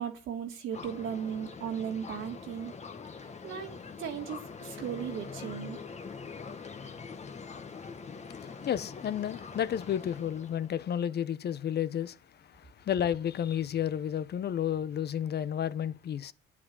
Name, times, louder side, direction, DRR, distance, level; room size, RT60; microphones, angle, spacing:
voice 1, 0.0-2.7 3.2-5.8, right 8 dB, 90° right, 2.6 m, -37 dB
sound 1, 0.7-10.8, left 5 dB, 35° left, 1.3 m, -44 dB
voice 2, 8.7-12.2 12.5-16.3, left 9 dB, 55° left, 0.7 m, -31 dB
9.8 x 8.5 x 8.2 m
cardioid pair, 90°, 20 cm